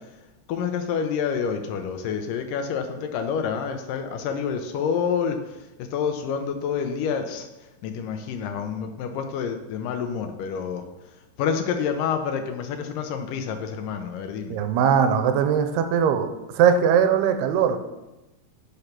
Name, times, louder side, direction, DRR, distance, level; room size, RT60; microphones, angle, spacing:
voice 1, 0.5-5.4 5.9-7.5 7.8-10.8 11.4-14.6, left 7 dB, 75° left, 6 dB, 2.0 m, -28 dB
voice 2, 14.5-16.3 16.5-17.8, right 7 dB, 90° right, 8 dB, 2.7 m, -20 dB
8.4 x 6.0 x 5.9 m, 1.0 s
omnidirectional pair, 4.5 m